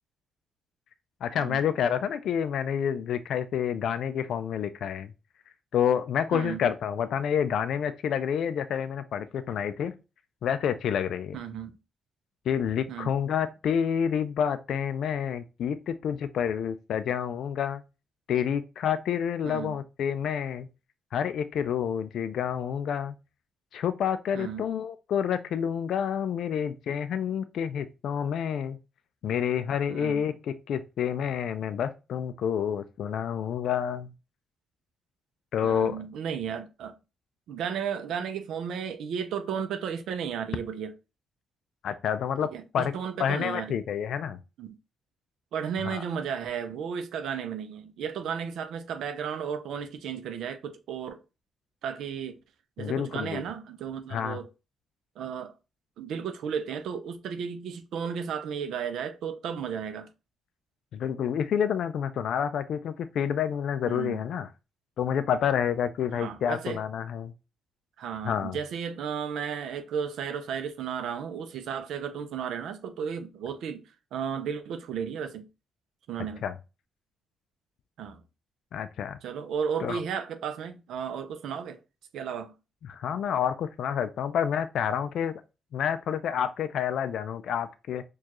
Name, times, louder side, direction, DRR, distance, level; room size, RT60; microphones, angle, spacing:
voice 1, 1.2-5.1 5.7-9.9 10.4-11.4 12.5-17.8 18.3-20.7 21.1-23.1 23.7-28.8 29.2-34.1 35.5-36.0 41.8-44.4 45.9-46.0 52.8-53.4 54.1-54.4 60.9-64.5 65.0-67.3 68.2-68.6 76.4-76.5 78.7-79.2 79.8-80.0 82.8-85.3 85.7-88.0, left 8 dB, 75° left, 0.3 m, -29 dB
voice 2, 6.3-6.6 11.3-11.7 12.9-13.1 19.4-19.8 24.3-24.7 29.9-30.3 35.6-36.9 37.5-40.9 42.4-43.8 44.6-44.7 45.5-51.2 51.8-52.4 52.8-54.5 55.2-55.5 56.0-60.1 63.9-64.2 66.1-66.8 68.0-73.8 74.1-75.5 76.1-76.4 78.0-78.2 79.2-81.8 82.1-82.5, right 7 dB, 85° right, 0.5 m, -34 dB
4.5 x 2.3 x 2.9 m
cardioid pair, 80°, 0 cm